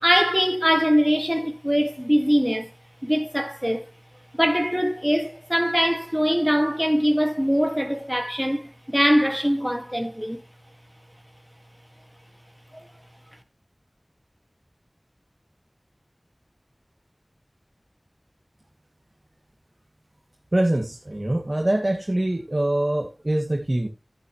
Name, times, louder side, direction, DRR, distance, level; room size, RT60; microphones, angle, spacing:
voice 1, 0.0-2.7 3.0-3.9 4.3-10.4 12.7-12.8, equal, 5° right, 1.7 m, -22 dB
voice 2, 20.5-23.9, right 1 dB, 45° right, 1.7 m, -24 dB
12.0 x 9.8 x 3.0 m
wide cardioid pair, 40°, 0 cm